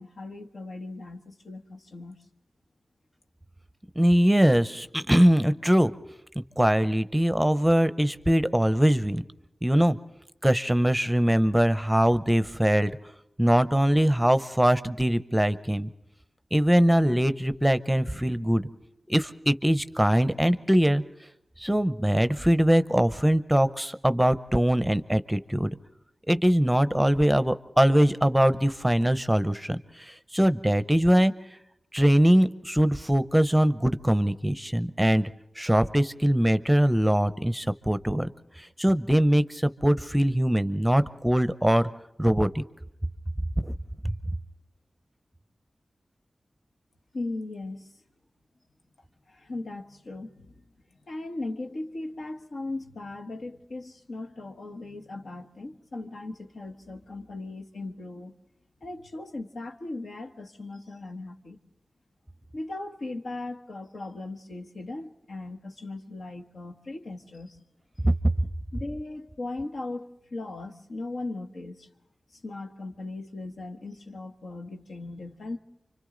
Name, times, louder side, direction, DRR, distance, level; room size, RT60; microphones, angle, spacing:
voice 1, 0.0-2.2 47.1-47.9 49.3-50.7 51.1-58.3 58.8-61.6 62.5-67.6 68.7-71.9 72.3-75.6, left 2 dB, 80° left, 4 dB, 1.3 m, -38 dB
voice 2, 4.0-5.9 6.6-9.2 9.6-10.0 10.4-12.9 13.4-15.9 16.5-18.7 19.1-21.0 21.6-25.7 26.3-31.3 31.9-35.3 35.6-38.3 38.6-41.9 42.2-42.6 43.6-43.7 44.0-44.1 68.0-68.1, equal, 5° right, 12 dB, 0.7 m, -22 dB
29.5 x 25.0 x 3.9 m, 0.82 s
wide cardioid pair, 70°, 0 cm